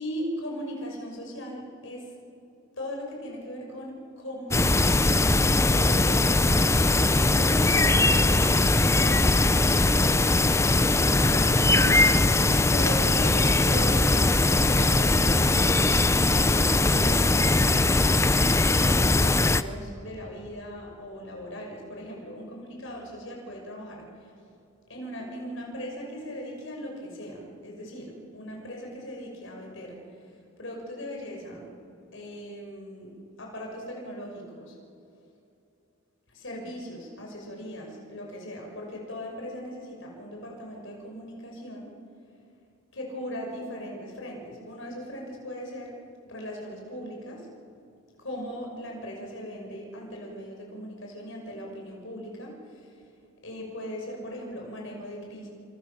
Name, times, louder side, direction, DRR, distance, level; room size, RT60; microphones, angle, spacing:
voice 1, 0.0-2.1 2.8-5.2 5.5-10.7 11.2-12.1 12.7-17.9 18.8-24.3 24.9-30.0 30.6-31.7 32.1-34.7 36.3-41.9 42.9-46.0 46.3-47.5 48.2-52.9 53.4-55.5, equal, 60° left, 0 dB, 6.4 m, -39 dB
sound 1, 4.5-19.6, left 2 dB, 15° left, 0.6 m, -21 dB
28.5 x 27.5 x 7.3 m, 2.7 s
head